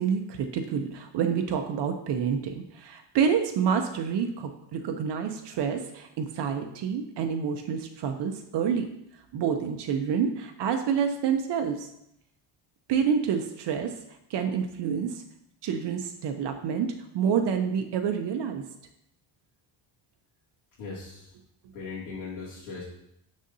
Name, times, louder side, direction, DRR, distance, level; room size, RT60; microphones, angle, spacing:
voice 1, 0.0-8.9 9.3-11.9 12.9-13.9 14.3-15.2 15.6-18.6, right 7 dB, 60° right, 5 dB, 0.7 m, -28 dB
voice 2, 20.8-21.3 21.7-22.8, left 4 dB, 85° left, -9 dB, 2.4 m, -38 dB
6.5 x 6.4 x 2.7 m, 0.78 s
cardioid pair, 160°, 46 cm